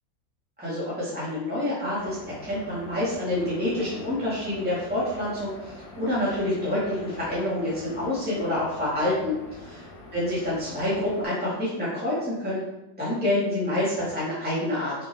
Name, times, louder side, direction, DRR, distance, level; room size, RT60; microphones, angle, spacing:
voice 1, 0.6-9.6 10.1-12.6 13.0-14.9, left 1 dB, 5° right, -10 dB, 1.6 m, -27 dB
sound 1, 1.9-11.2, left 2 dB, 80° left, 2.3 m, -44 dB
6.4 x 5.3 x 3.5 m, 0.98 s
omnidirectional pair, 2.0 m